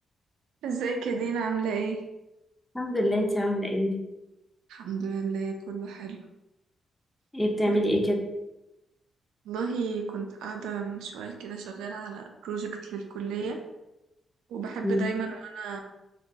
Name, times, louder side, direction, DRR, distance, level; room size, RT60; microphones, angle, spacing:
voice 1, 0.6-2.0 4.7-6.2 7.7-7.8 9.5-13.6 14.5-15.8, right 5 dB, 75° right, 4 dB, 0.3 m, -32 dB
voice 2, 2.7-4.0 7.3-8.1 14.8-15.0, equal, 15° left, 0 dB, 0.6 m, -25 dB
2.2 x 2.1 x 2.7 m, 0.94 s
hypercardioid pair, 40°, 0 cm